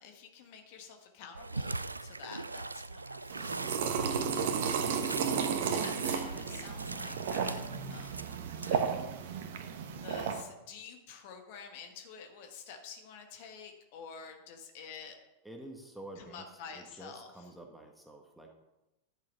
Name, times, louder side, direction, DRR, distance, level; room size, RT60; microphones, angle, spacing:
voice 1, 0.0-4.5 5.1-7.6 7.9-8.4 8.6-9.5 9.9-15.2 16.2-17.5, left 6 dB, 50° left, 4 dB, 1.5 m, -49 dB
sound 1, 1.3-8.9, right 3 dB, 80° right, 0.3 m, -41 dB
sound 2, 3.3-10.4, right 7 dB, 55° right, 1.1 m, -33 dB
voice 2, 15.4-16.5 16.7-18.5, right 1 dB, ahead, 2 dB, 1.6 m, -49 dB
11.0 x 6.5 x 5.4 m, 0.96 s
figure-of-eight pair, 90°, 0 cm